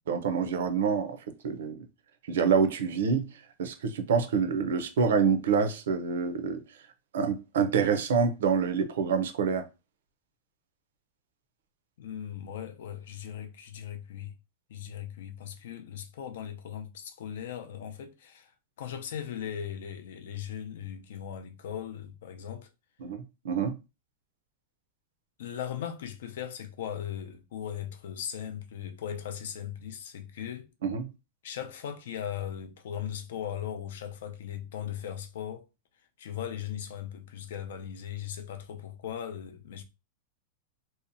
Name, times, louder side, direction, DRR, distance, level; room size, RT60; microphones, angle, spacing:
voice 1, 0.1-1.9 2.3-3.3 3.6-6.6 7.1-9.7 23.0-23.8 30.8-31.1, right 6 dB, 80° right, 0.5 m, -27 dB
voice 2, 12.0-14.3 14.7-18.5 18.8-22.7 25.4-30.7 31.4-35.7 36.2-39.8, left 9 dB, 65° left, 0.4 m, -38 dB
2.7 x 2.1 x 2.5 m
supercardioid pair, 180°, 0 cm